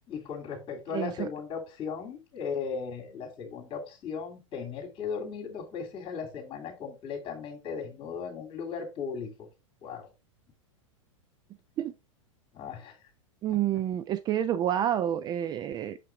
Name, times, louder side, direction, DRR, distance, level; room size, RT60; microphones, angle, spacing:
voice 1, 0.1-9.5 9.8-10.1 12.5-13.0 13.5-13.6, left 6 dB, 30° left, 2.8 m, -37 dB
voice 2, 0.9-1.3 11.8-11.9 13.4-16.0, right 11 dB, 25° right, 0.4 m, -29 dB
6.7 x 5.7 x 3.3 m
figure-of-eight pair, 100°, 17 cm